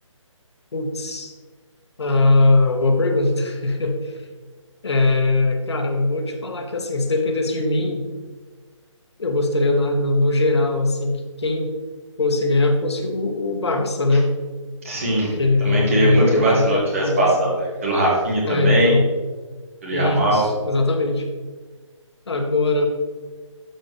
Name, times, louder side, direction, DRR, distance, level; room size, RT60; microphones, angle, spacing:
voice 1, 0.7-1.3 2.0-4.1 4.8-8.1 9.2-11.7 12.2-14.3 15.4-17.5 18.4-19.1 19.9-21.2 22.3-22.8, left 2 dB, 55° left, 2 dB, 1.5 m, -20 dB
voice 2, 14.8-15.3 15.6-19.0 19.8-20.4, right 1 dB, 25° right, -3 dB, 2.0 m, -20 dB
12.5 x 5.5 x 3.3 m, 1.4 s
hypercardioid pair, 180°, 17 cm